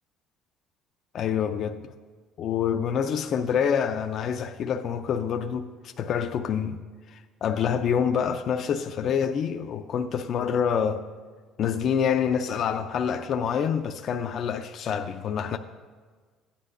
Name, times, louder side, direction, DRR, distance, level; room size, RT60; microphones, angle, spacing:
voice 1, 1.1-1.8 2.4-6.8 7.1-11.0 11.6-15.6, left 7 dB, 50° left, 0.4 m, -27 dB
15.0 x 10.0 x 2.5 m
cardioid pair, 120°, 0 cm